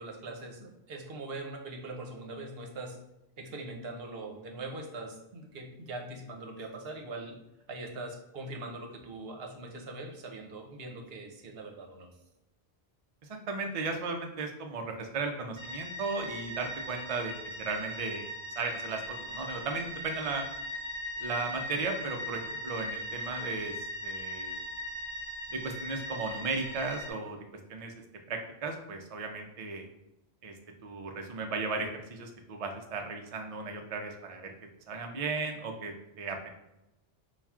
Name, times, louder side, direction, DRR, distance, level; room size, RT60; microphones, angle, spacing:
voice 1, 0.0-3.0 3.4-7.4 7.7-12.1, right 2 dB, 70° right, 3 dB, 0.9 m, -42 dB
voice 2, 13.5-18.3 18.6-20.4 21.2-24.6 25.5-27.4 27.7-27.9 28.3-29.9 30.4-30.5 30.8-34.5 34.9-36.5, right 4 dB, 50° right, 3 dB, 0.4 m, -35 dB
sound 1, 15.6-27.1, equal, 30° right, 1.0 m, -39 dB
5.5 x 2.4 x 2.3 m, 0.91 s
omnidirectional pair, 1.1 m